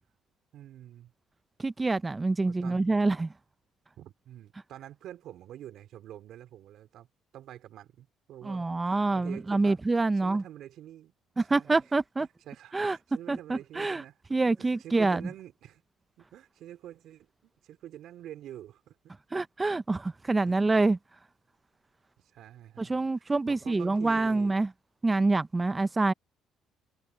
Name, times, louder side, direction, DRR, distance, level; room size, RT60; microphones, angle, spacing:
voice 1, 0.5-1.1 2.4-2.9 4.0-7.1 7.3-9.8 10.1-11.1 11.4-11.8 12.2-15.8 16.2-19.1 20.4-20.6 22.2-24.5, right 12 dB, 70° right, 4.2 m, -47 dB
voice 2, 1.6-3.3 8.4-10.4 11.4-12.3 12.7-13.0 13.3-14.0 14.3-15.2 19.3-21.0 22.8-24.7 25.0-26.1, right 3 dB, 20° right, 0.6 m, -26 dB
cardioid pair, 100°, 0 cm